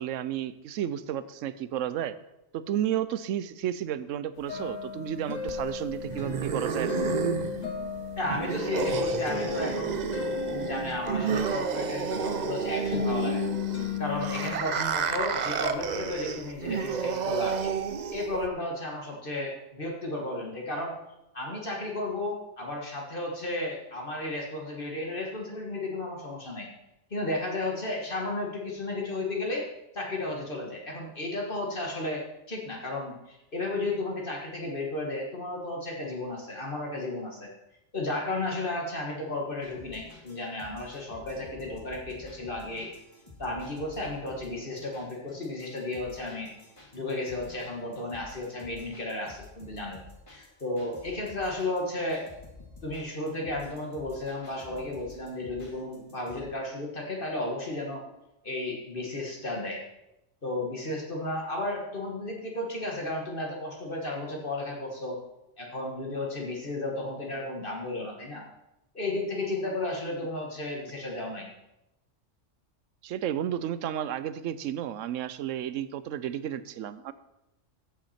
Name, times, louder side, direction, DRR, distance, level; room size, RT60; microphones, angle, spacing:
voice 1, 0.0-2.2 2.5-7.1 73.0-77.1, right 10 dB, 80° right, 14 dB, 1.0 m, -32 dB
sound 1, 4.4-14.5, left 6 dB, 75° left, 1.5 m, -34 dB
sound 2, 5.5-18.5, right 7 dB, 50° right, 0.5 m, -31 dB
voice 2, 8.2-10.0 10.5-13.5 14.0-17.7 18.1-20.9 21.3-26.7 27.1-29.7 29.9-37.5 37.9-42.9 43.4-46.5 46.9-50.0 50.3-52.3 52.8-58.0 58.4-59.8 60.4-65.2 65.6-68.4 68.9-71.5, left 2 dB, 45° left, -1 dB, 1.7 m, -33 dB
sound 3, 39.6-56.4, left 3 dB, 25° left, 1.8 m, -51 dB
14.5 x 6.0 x 4.3 m, 0.91 s
omnidirectional pair, 1.3 m